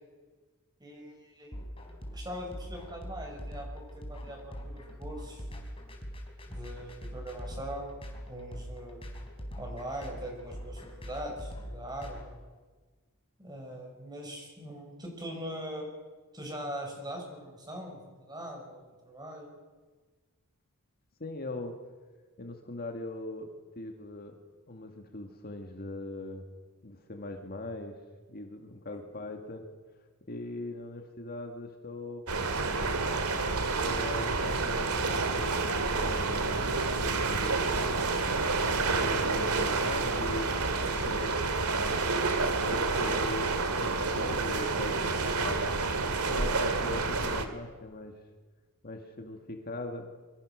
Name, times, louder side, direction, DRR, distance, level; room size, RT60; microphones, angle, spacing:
voice 1, 0.8-1.6 2.1-5.5 6.5-7.9 8.2-9.0 9.6-12.4 13.4-15.9 16.3-19.5, equal, 20° right, 1 dB, 6.7 m, -41 dB
sound 1, 1.5-12.2, equal, 25° left, 4.5 m, -42 dB
voice 2, 21.2-21.8 22.4-24.4 24.7-26.4 26.8-28.0 28.3-29.7 30.3-32.3 33.8-35.6 35.8-38.2 38.6-40.5 41.0-41.6 42.6-45.7 46.2-48.2 48.8-50.1, left 2 dB, 45° left, 4 dB, 2.1 m, -40 dB
sound 2, 32.3-47.5, right 3 dB, 80° right, 2.3 m, -29 dB
26.5 x 24.5 x 6.4 m, 1.3 s
head